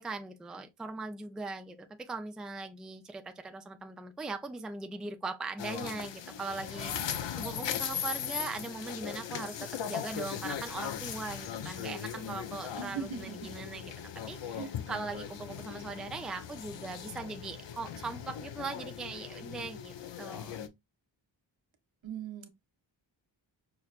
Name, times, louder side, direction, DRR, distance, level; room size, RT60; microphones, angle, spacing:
voice 1, 0.0-20.6, right 3 dB, ahead, 0.3 m, -40 dB
sound 1, 5.6-20.7, left 8 dB, 65° left, 0.6 m, -39 dB
voice 2, 12.8-13.5 14.5-14.7 22.0-22.5, right 6 dB, 75° right, 0.9 m, -39 dB
5.8 x 2.1 x 2.4 m
wide cardioid pair, 85°, 47 cm